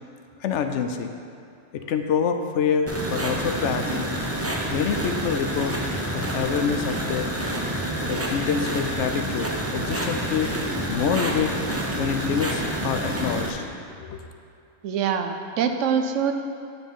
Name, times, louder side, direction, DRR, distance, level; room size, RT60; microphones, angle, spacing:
voice 1, 0.4-1.1 1.9-4.1 4.7-5.7 6.1-7.3 8.1-10.5 10.9-11.5 12.0-13.6 13.9-14.2, left 7 dB, 75° left, 6 dB, 0.9 m, -26 dB
sound 1, 2.9-13.5, right 1 dB, 20° right, 0.4 m, -28 dB
voice 2, 14.8-16.3, right 7 dB, 90° right, 6 dB, 1.0 m, -24 dB
9.2 x 4.0 x 5.4 m, 2.5 s
omnidirectional pair, 1.2 m